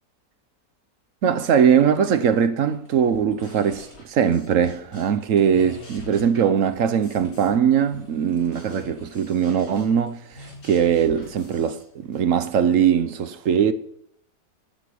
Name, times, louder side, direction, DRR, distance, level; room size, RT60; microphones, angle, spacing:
voice 1, 1.2-13.7, right 8 dB, 60° right, 0.9 m, -21 dB
sound 1, 2.1-2.3 2.6-4.3 5.0-6.1 6.5-9.3 9.6-10.7 11.9-12.1, equal, 20° left, 5.6 m, -52 dB
sound 2, 3.1-5.2 5.5-7.6 7.9-12.3, left 1 dB, 70° left, 3.6 m, -45 dB
10.5 x 6.7 x 8.3 m
omnidirectional pair, 1.9 m